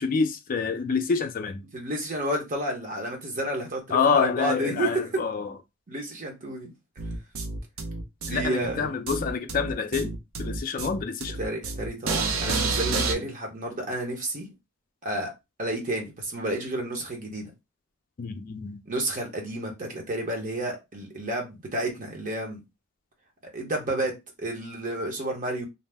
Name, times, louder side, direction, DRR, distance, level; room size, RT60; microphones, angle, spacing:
voice 1, 0.0-1.6 3.9-5.5 8.3-10.1 10.4-11.4 13.0-13.2 18.2-18.8, left 5 dB, 45° left, 0.4 m, -27 dB
voice 2, 1.7-4.9 5.9-6.7 8.2-8.9 11.4-14.5 15.0-15.3 15.6-17.5 18.9-22.6 23.5-25.6, right 1 dB, 40° right, 0.9 m, -31 dB
sound 1, 7.0-13.1, right 4 dB, 90° right, 0.6 m, -30 dB
2.6 x 2.0 x 3.3 m
head